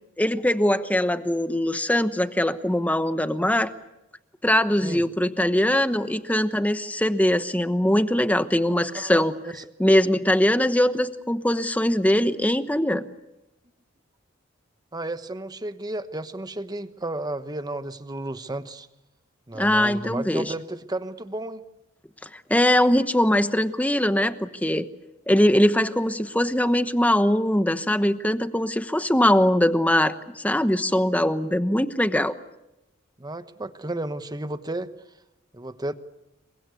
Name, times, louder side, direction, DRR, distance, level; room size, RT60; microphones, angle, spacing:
voice 1, 0.2-3.7 4.4-9.3 9.8-13.1 19.5-20.5 22.3-24.9 25.3-32.3, left 1 dB, 5° left, 11 dB, 1.0 m, -21 dB
voice 2, 8.9-9.7 14.9-18.9 19.5-21.6 33.2-34.9 35.5-35.9, right 2 dB, 20° right, 11 dB, 1.1 m, -33 dB
27.5 x 23.5 x 8.3 m, 0.93 s
head